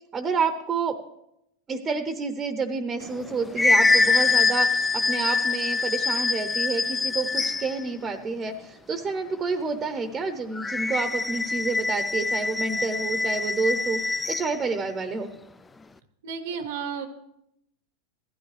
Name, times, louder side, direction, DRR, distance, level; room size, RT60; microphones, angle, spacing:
voice 1, 0.1-1.0 1.7-15.3, right 4 dB, 20° right, 8 dB, 0.8 m, -29 dB
sound 1, 3.1-7.8 10.6-14.6, left 3 dB, 10° left, 0.3 m, -24 dB
voice 2, 16.2-17.1, right 6 dB, 85° right, 7 dB, 1.2 m, -32 dB
15.5 x 12.5 x 3.3 m, 0.81 s
supercardioid pair, 140°, 0 cm